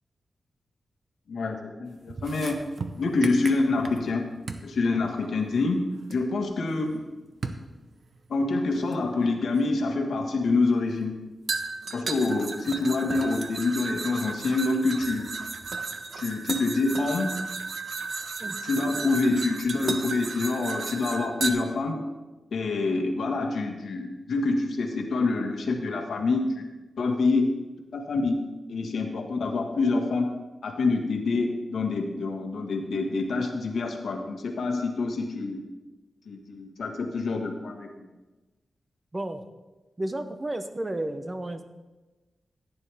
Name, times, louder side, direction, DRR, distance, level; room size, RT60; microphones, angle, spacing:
voice 1, 1.8-2.6 3.0-4.3 4.6-5.8 6.1-7.0 8.3-11.1 11.9-15.3 16.2-17.3 18.6-22.0 22.5-26.6 27.0-27.5 27.9-28.4 28.7-30.3 30.6-35.6 36.3-38.0, left 3 dB, 80° left, 3 dB, 1.5 m, -26 dB
sound 1, 2.1-4.1 4.5-4.7 6.1-6.2 7.4-7.7 8.9-9.0 11.5-21.5, right 4 dB, 55° right, 0.9 m, -34 dB
voice 2, 39.1-39.4 40.0-41.6, right 1 dB, 20° right, 8 dB, 0.7 m, -32 dB
14.5 x 9.7 x 3.5 m, 1.1 s
wide cardioid pair, 140°, 0 cm